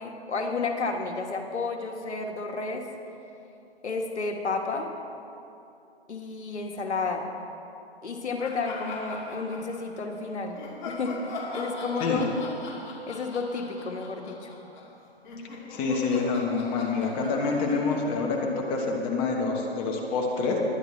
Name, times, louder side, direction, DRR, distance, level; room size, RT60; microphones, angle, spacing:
voice 1, 0.0-2.9 3.8-4.9 6.1-7.3 8.0-12.5 13.1-14.5, left 3 dB, 85° left, 3 dB, 1.5 m, -31 dB
sound 1, 8.4-10.0 10.5-18.8, left 3 dB, 45° left, 2.7 m, -41 dB
voice 2, 15.7-20.6, left 4 dB, 15° left, 0 dB, 1.1 m, -27 dB
21.0 x 10.5 x 3.2 m, 2.8 s
hypercardioid pair, 155°, 33 cm